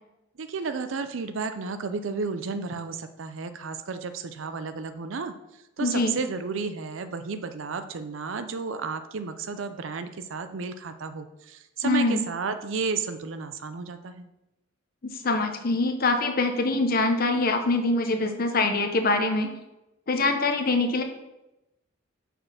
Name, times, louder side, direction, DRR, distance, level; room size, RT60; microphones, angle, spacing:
voice 1, 0.4-5.3 5.8-14.3, right 4 dB, 75° right, 10 dB, 0.5 m, -32 dB
voice 2, 5.8-6.2 11.8-12.2 15.0-19.5 20.1-21.0, left 2 dB, 50° left, 5 dB, 0.8 m, -24 dB
5.5 x 4.2 x 5.7 m, 0.92 s
head